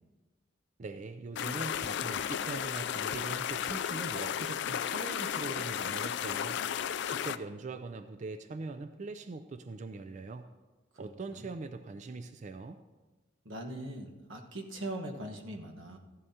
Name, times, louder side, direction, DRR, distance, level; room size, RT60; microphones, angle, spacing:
voice 1, 0.8-6.6 7.1-10.5 11.0-12.8, right 3 dB, 40° right, 9 dB, 0.4 m, -42 dB
sound 1, 1.4-7.4, left 9 dB, 60° left, 0.4 m, -34 dB
voice 2, 10.9-11.5 13.4-16.0, right 1 dB, 85° right, 2 dB, 1.3 m, -41 dB
14.5 x 11.0 x 2.8 m, 1.2 s
head